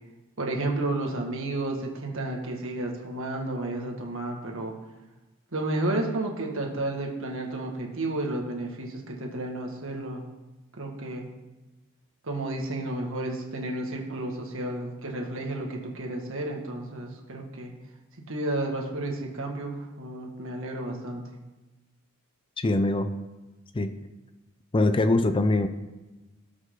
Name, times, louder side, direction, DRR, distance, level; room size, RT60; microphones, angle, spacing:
voice 1, 0.4-4.7 5.5-10.2 10.8-11.3 12.2-17.7 18.3-21.2, right 2 dB, 65° right, 1 dB, 1.9 m, -32 dB
voice 2, 22.6-23.1 23.7-24.0 24.7-25.7, left 2 dB, 25° left, 10 dB, 0.5 m, -23 dB
18.5 x 6.2 x 3.9 m, 1.1 s
head